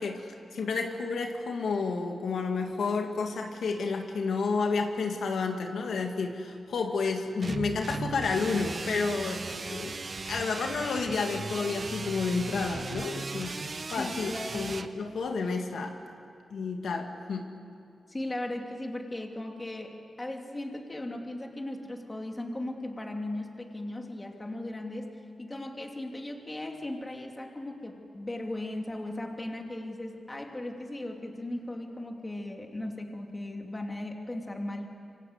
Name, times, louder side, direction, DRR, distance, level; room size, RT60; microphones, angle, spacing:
voice 1, 0.0-10.0 10.3-13.5 13.9-16.0 16.5-17.5, left 4 dB, 75° left, 3 dB, 1.9 m, -31 dB
sound 1, 7.4-14.9, right 4 dB, 40° right, 1.1 m, -37 dB
voice 2, 14.0-14.7 18.1-34.9, left 1 dB, 20° left, 2 dB, 2.9 m, -37 dB
26.5 x 25.0 x 8.1 m, 2.4 s
wide cardioid pair, 100°, 0 cm